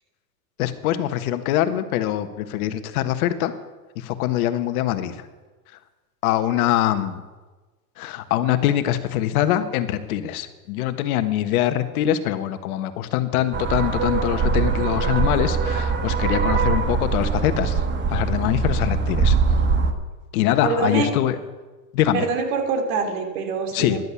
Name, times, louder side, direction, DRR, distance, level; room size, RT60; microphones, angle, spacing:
voice 1, 0.6-3.5 3.9-5.2 6.2-7.2 8.0-17.8 18.1-19.4 20.3-21.4 21.9-22.3 23.7-24.0, left 12 dB, 60° left, 11 dB, 1.4 m, -23 dB
sound 1, 13.5-19.9, right 5 dB, 20° right, 1.4 m, -22 dB
voice 2, 20.6-21.1 22.1-24.0, right 4 dB, 60° right, 5 dB, 3.0 m, -24 dB
13.5 x 11.0 x 7.1 m, 1.3 s
hypercardioid pair, 110°, 49 cm